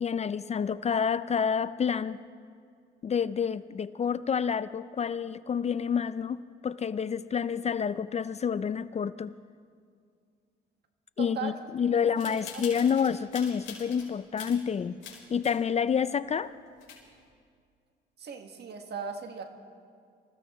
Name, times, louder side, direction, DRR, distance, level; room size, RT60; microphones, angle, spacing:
voice 1, 0.0-2.2 3.0-9.3 11.2-15.0 15.3-16.5, left 7 dB, 35° left, 15 dB, 0.4 m, -28 dB
voice 2, 11.2-11.5 11.9-12.0 12.3-12.6 18.2-19.4, right 6 dB, 55° right, 5 dB, 1.6 m, -38 dB
sound 1, 12.2-14.1 14.4-15.6 15.9-16.0 16.5-16.6 16.8-17.2, left 6 dB, 75° left, 4.5 m, -44 dB
26.5 x 15.5 x 3.1 m, 2.2 s
cardioid pair, 90°, 20 cm